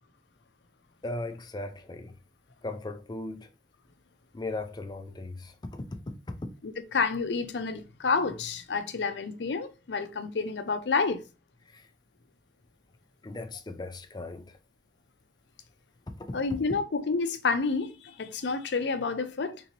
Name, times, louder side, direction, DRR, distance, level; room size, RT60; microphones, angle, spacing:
voice 1, 1.0-2.1 2.6-3.5 4.3-5.9 11.7-11.8 13.2-14.5, left 2 dB, 25° left, 0.4 m, -37 dB
voice 2, 6.6-11.2 16.3-19.6, left 4 dB, 70° left, 0.5 m, -29 dB
3.7 x 2.9 x 2.9 m
head